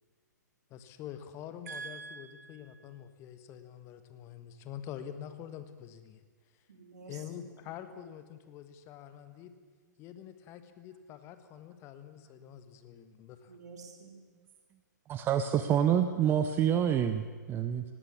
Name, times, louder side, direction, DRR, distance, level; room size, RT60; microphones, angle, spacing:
voice 1, 0.7-6.2 6.5-6.6 7.1-9.5 10.0-13.6, left 10 dB, 25° left, 10 dB, 1.6 m, -46 dB
voice 2, 1.7-2.9 6.7-7.7 13.5-14.2, right 5 dB, 60° right, 3 dB, 4.2 m, -47 dB
voice 3, 15.1-17.8, right 9 dB, 20° right, 10 dB, 0.9 m, -27 dB
19.0 x 17.0 x 8.4 m, 1.5 s
figure-of-eight pair, 115°, 10 cm